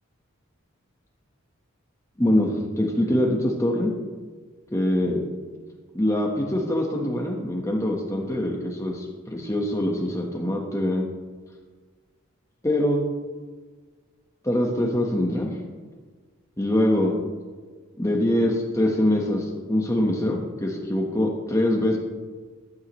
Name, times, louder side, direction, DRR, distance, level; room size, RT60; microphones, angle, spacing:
voice 1, 2.2-3.9 4.7-5.2 5.9-11.0 12.6-13.0 14.4-15.5 16.6-17.1 18.0-22.0, left 1 dB, 15° left, 0 dB, 1.2 m, -23 dB
15.0 x 11.5 x 3.1 m, 1.4 s
head